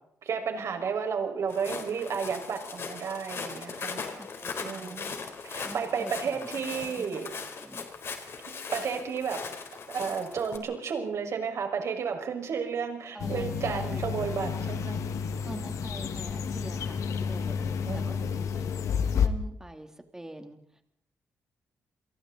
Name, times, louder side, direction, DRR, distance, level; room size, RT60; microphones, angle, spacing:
voice 1, 0.2-4.0 4.6-5.1 5.4-7.3 8.7-9.4 9.9-15.0 17.9-18.5, right 6 dB, 65° right, 4 dB, 5.5 m, -32 dB
Walk footsteps, 1.5-10.6, left 5 dB, 55° left, 3.9 m, -39 dB
voice 2, 4.1-5.0 5.6-6.1 6.7-8.0 13.1-14.1 15.4-18.1 18.5-18.6 19.1-20.6, right 1 dB, 10° right, 5 dB, 3.2 m, -44 dB
sound 1, 13.2-19.3, left 6 dB, 80° left, 1.8 m, -30 dB
30.0 x 23.0 x 4.1 m, 0.72 s
cardioid pair, 105°, 5 cm